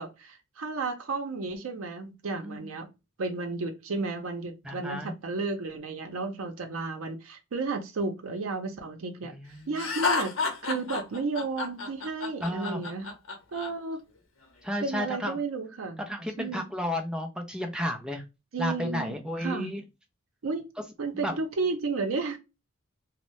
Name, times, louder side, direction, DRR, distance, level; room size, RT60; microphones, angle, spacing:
voice 1, 0.0-2.9 3.2-10.3 10.6-13.1 13.5-14.0 14.8-16.0 16.4-16.6 18.5-19.7 20.4-20.6 21.0-22.4, right 3 dB, 90° right, 0.5 m, -33 dB
voice 2, 2.4-2.7 4.6-5.1 9.2-9.7 12.4-12.8 14.6-15.4 16.0-18.2 18.6-19.8 20.8-20.9 21.1-21.4, left 1 dB, 5° right, 0.5 m, -33 dB
Laughter, 9.8-13.7, left 4 dB, 75° left, 0.7 m, -30 dB
2.6 x 2.1 x 3.0 m
head